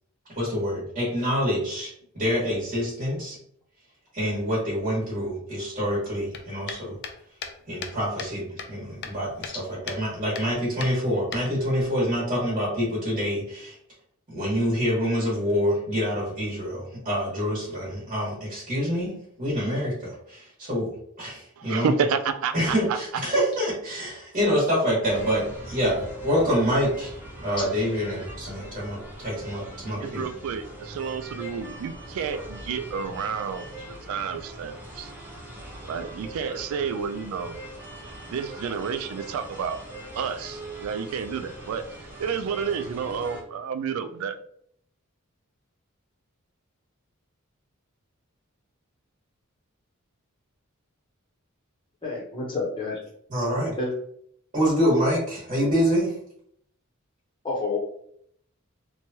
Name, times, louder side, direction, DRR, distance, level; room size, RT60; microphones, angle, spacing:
voice 1, 0.3-3.4 4.1-7.0 7.7-13.8 14.3-19.1 19.4-21.9 22.5-27.1 27.4-30.2 53.3-53.8 54.5-56.1, equal, 35° right, -7 dB, 1.3 m, -26 dB
sound 1, 6.3-8.3 8.6-9.6 9.9-10.0 10.3-10.5 10.8-11.8, left 6 dB, 50° left, 0.4 m, -37 dB
voice 2, 21.6-23.0 30.0-33.7 34.1-35.1 35.8-37.6 38.2-39.8 40.2-41.9 42.2-44.4, right 6 dB, 75° right, 11 dB, 0.3 m, -30 dB
sound 2, 25.0-43.4, right 1 dB, 10° right, 0.7 m, -41 dB
voice 3, 52.0-53.0 53.8-53.9 57.4-57.8, left 3 dB, 25° left, -4 dB, 0.8 m, -29 dB
3.1 x 2.2 x 2.7 m, 0.68 s
head